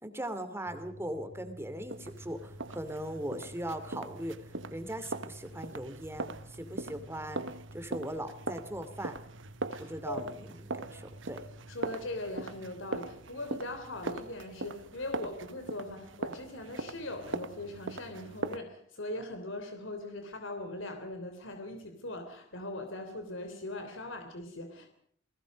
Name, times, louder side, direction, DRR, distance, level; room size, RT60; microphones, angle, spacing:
voice 1, 0.0-4.4 4.7-7.4 7.7-9.1 9.8-10.5 10.9-11.4, right 1 dB, 15° right, 10 dB, 2.7 m, -39 dB
sound 1, 0.7-14.5, right 1 dB, 45° right, 3.1 m, -52 dB
sound 2, 1.9-18.6, right 3 dB, 70° right, 1.2 m, -41 dB
voice 2, 9.7-10.2 11.7-24.9, left 1 dB, 75° left, 6 dB, 3.3 m, -40 dB
29.5 x 20.0 x 5.3 m, 0.63 s
head